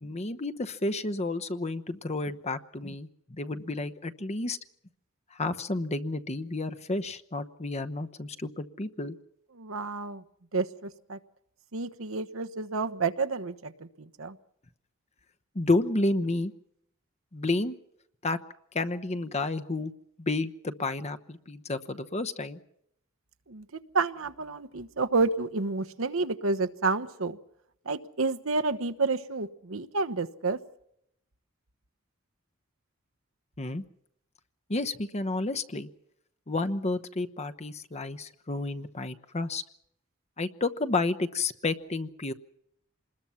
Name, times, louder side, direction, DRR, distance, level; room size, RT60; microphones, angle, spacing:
voice 1, 0.0-4.6 5.3-9.2 15.5-16.5 17.3-17.7 18.2-18.4 18.7-19.9 20.2-22.6 33.6-33.8 34.7-35.9 36.5-39.6 40.4-42.3, left 2 dB, 35° left, 11 dB, 1.0 m, -31 dB
voice 2, 9.5-10.2 10.5-11.2 11.7-14.4 23.5-27.4 27.8-30.6, right 3 dB, 80° right, 8 dB, 1.1 m, -30 dB
27.5 x 20.5 x 5.8 m, 0.74 s
head